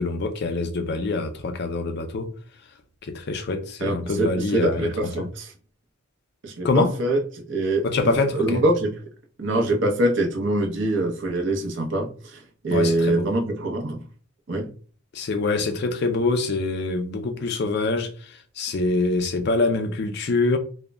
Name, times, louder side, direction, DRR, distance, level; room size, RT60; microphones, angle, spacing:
voice 1, 0.0-2.3 3.0-5.3 6.6-6.9 7.8-8.6 12.7-13.3 15.1-20.6, left 3 dB, 50° left, 0.4 m, -25 dB
voice 2, 3.8-5.5 6.4-7.2 7.5-8.9 9.4-14.0 14.5-14.7, right 1 dB, 60° right, 0.6 m, -24 dB
2.1 x 2.0 x 3.4 m
head